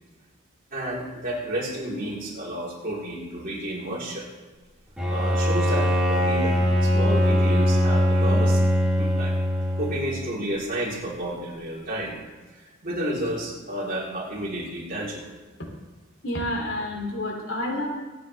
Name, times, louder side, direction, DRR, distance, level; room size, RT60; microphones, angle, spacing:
voice 1, 0.7-4.3 5.1-8.6 9.0-9.3 9.8-12.1 12.5-15.3, right 1 dB, 45° right, -5 dB, 3.9 m, -31 dB
Bowed string instrument, 5.0-10.3, equal, 5° right, 4.4 m, -21 dB
voice 2, 16.2-18.0, left 1 dB, 75° left, 1 dB, 3.2 m, -29 dB
24.0 x 9.2 x 3.5 m, 1.3 s
head